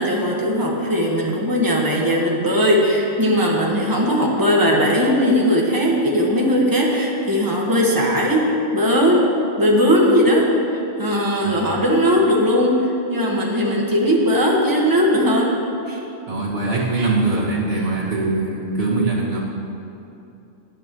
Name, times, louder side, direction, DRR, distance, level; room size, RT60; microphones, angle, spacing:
voice 1, 0.0-9.2 9.6-15.6 15.9-16.0 17.0-17.1, equal, 15° right, -3 dB, 1.5 m, -18 dB
voice 2, 16.3-19.4, right 3 dB, 50° right, -5 dB, 2.3 m, -22 dB
18.0 x 9.2 x 3.1 m, 2.8 s
omnidirectional pair, 1.3 m